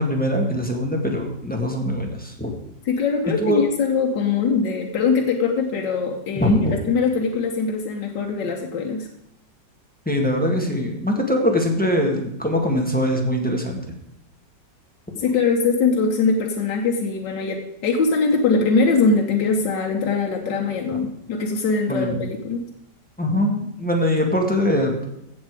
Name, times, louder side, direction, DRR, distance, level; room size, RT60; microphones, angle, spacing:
voice 1, 0.0-2.5 3.4-3.6 6.3-6.7 10.0-13.8 21.9-22.2 23.2-25.1, equal, 5° left, 1 dB, 1.7 m, -22 dB
voice 2, 2.9-9.1 15.2-22.7, left 4 dB, 85° left, 1 dB, 1.7 m, -22 dB
16.0 x 7.2 x 4.8 m, 0.81 s
omnidirectional pair, 1.9 m